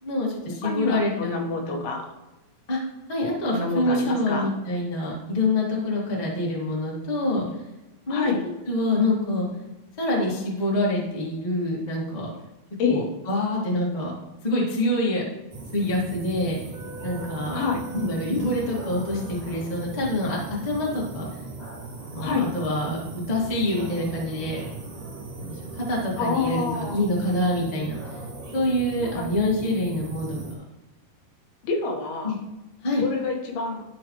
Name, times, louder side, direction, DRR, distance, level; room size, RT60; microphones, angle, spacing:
voice 1, 0.0-1.7 2.7-2.8 3.1-7.5 8.1-8.3 8.7-9.4 10.0-12.3 12.9-14.1 14.4-15.2 15.7-16.5 17.0-17.6 17.9-20.4 20.6-21.3 22.0-23.0 23.3-24.6 25.4-28.0 28.5-30.5 32.2-32.4 32.8-33.1, left 1 dB, 40° left, -4 dB, 0.5 m, -26 dB
voice 2, 0.6-2.1 3.5-4.5 8.1-8.4 12.8-13.1 17.5-17.8 22.2-22.5 26.2-27.0 29.0-29.3 31.6-32.4 33.0-33.8, left 4 dB, 80° left, 1 dB, 3.1 m, -27 dB
sound 1, 15.5-30.6, right 3 dB, 60° right, 3.6 m, -38 dB
13.0 x 4.4 x 3.0 m, 1.0 s
omnidirectional pair, 4.4 m